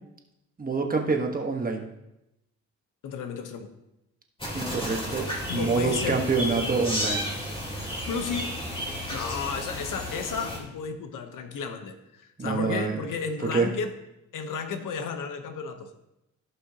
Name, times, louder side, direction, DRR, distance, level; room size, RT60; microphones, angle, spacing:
voice 1, 0.6-1.8 4.5-7.3 12.4-13.0 13.5-13.7, right 4 dB, 30° right, 3 dB, 1.2 m, -26 dB
voice 2, 3.0-3.7 5.5-6.2 8.1-8.6 9.1-14.0 14.3-15.9, left 5 dB, 80° left, 7 dB, 1.0 m, -33 dB
sound 1, 4.4-10.6, equal, 15° left, 2.5 m, -32 dB
15.5 x 5.5 x 2.8 m, 0.88 s
cardioid pair, 105°, 31 cm